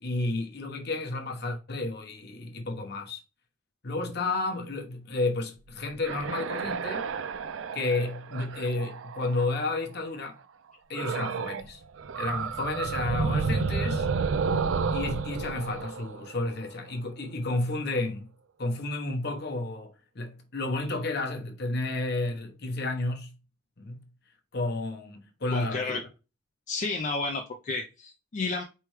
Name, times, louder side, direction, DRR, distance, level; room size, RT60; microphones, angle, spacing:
voice 1, 0.0-3.2 3.8-7.0 7.7-10.4 10.9-11.8 12.1-14.1 14.9-18.3 18.6-23.4 23.8-24.1 24.5-26.0, left 2 dB, 60° left, 1.1 m, -31 dB
sound 1, 5.7-9.8 10.9-11.7 12.0-16.9, right 5 dB, 85° right, 0.4 m, -31 dB
voice 2, 25.5-26.1 26.7-28.6, left 3 dB, 40° left, 0.5 m, -31 dB
4.5 x 3.4 x 3.1 m
head